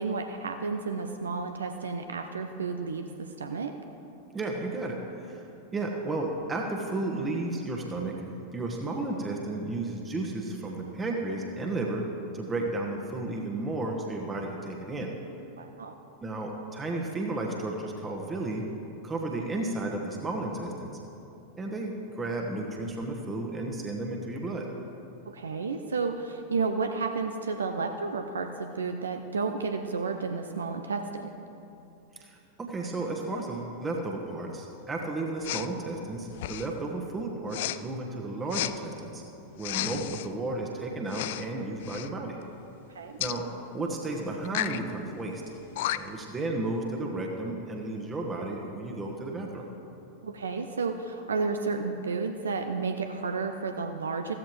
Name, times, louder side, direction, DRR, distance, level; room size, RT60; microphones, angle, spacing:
voice 1, 0.0-3.7 15.6-15.9 25.3-31.3 42.9-43.2 50.2-54.3, right 4 dB, 70° right, 6 dB, 0.5 m, -32 dB
voice 2, 4.3-5.4 5.7-8.2 8.5-12.0 12.3-15.1 16.2-18.6 19.0-21.0 21.6-24.7 32.1-39.2 39.6-42.4 43.2-43.5 43.7-45.4 45.9-49.6, right 2 dB, 15° right, 0 dB, 1.2 m, -33 dB
Respiratory sounds, 35.4-35.7 36.3-36.8 37.5-37.8 38.5-38.7 39.6-40.3 41.1-41.5 41.8-42.1 43.2-43.4 44.5-44.8 45.5-45.6 45.8-46.2, left 14 dB, 55° left, 0.3 m, -32 dB
15.0 x 13.5 x 3.1 m, 2.8 s
figure-of-eight pair, 90°, 0 cm